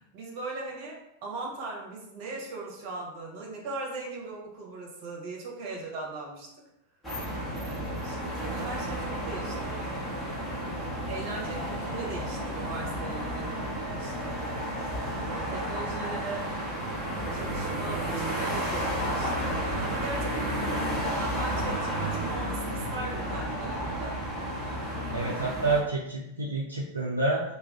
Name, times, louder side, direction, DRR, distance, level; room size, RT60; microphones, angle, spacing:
voice 1, 0.0-6.5 7.5-9.9 11.1-13.6 13.9-14.5 15.2-16.5 17.3-20.4 21.2-24.2, right 3 dB, 45° right, -1 dB, 0.8 m, -39 dB
sound 1, 7.0-25.8, right 1 dB, 15° left, 1.0 m, -32 dB
voice 2, 19.7-20.0 24.6-24.7 25.1-27.4, right 3 dB, 80° right, -3 dB, 0.4 m, -29 dB
2.4 x 2.3 x 3.4 m, 0.83 s
figure-of-eight pair, 90°, 0 cm